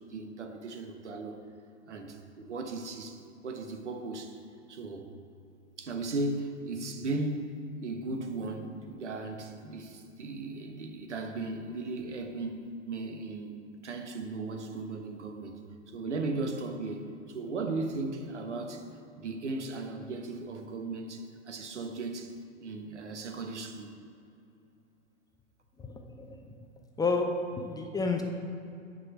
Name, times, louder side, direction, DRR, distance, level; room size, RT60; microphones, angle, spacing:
voice 1, 0.0-1.4 1.9-4.4 4.7-5.1 5.8-18.9 19.2-22.3 22.6-23.9, right 3 dB, 75° right, 5 dB, 1.2 m, -37 dB
voice 2, 25.8-26.3 27.0-28.2, left 3 dB, 10° left, 2 dB, 0.7 m, -30 dB
9.7 x 5.4 x 6.0 m, 2.6 s
figure-of-eight pair, 95°, 36 cm